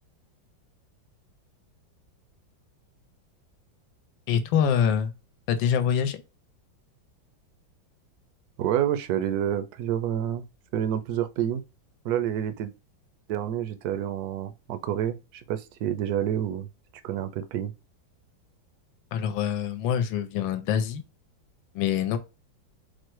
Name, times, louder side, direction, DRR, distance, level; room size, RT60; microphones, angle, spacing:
voice 1, 4.3-5.1 5.5-6.2 19.1-21.0 21.7-22.2, left 8 dB, 80° left, 1.4 m, -25 dB
voice 2, 8.6-10.4 10.7-11.6 12.0-12.7 13.3-16.7 17.0-17.7, right 10 dB, 70° right, 0.9 m, -28 dB
4.6 x 2.1 x 4.5 m
omnidirectional pair, 2.1 m